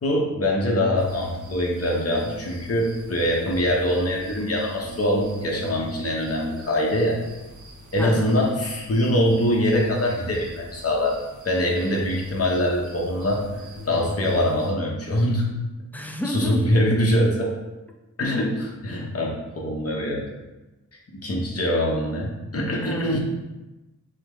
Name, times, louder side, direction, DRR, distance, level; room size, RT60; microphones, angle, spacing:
voice 1, 0.0-7.2 7.9-11.2 11.4-13.4 13.8-15.5 16.2-17.5 18.2-20.2 21.2-23.2, left 1 dB, 50° left, -1 dB, 1.0 m, -23 dB
sound 1, 1.0-14.7, equal, 70° right, 0.8 m, -40 dB
voice 2, 8.0-8.3 15.9-16.8 22.8-23.2, left 1 dB, 5° left, 2 dB, 0.5 m, -30 dB
6.3 x 2.1 x 3.8 m, 1.1 s
wide cardioid pair, 95°, 31 cm